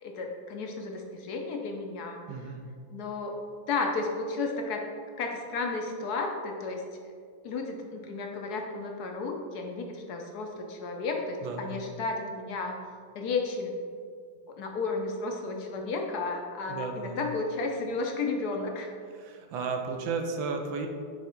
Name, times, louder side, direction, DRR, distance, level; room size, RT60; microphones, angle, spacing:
voice 1, 0.0-2.2 2.9-3.4 3.7-4.8 5.2-6.8 7.4-12.8 13.1-13.8 14.5-18.9, left 3 dB, 65° left, 2 dB, 1.0 m, -33 dB
voice 2, 2.3-2.7 11.4-11.8 16.7-17.2 19.1-20.9, right 4 dB, 75° right, 4 dB, 1.4 m, -34 dB
9.0 x 3.5 x 4.4 m, 2.2 s
omnidirectional pair, 2.2 m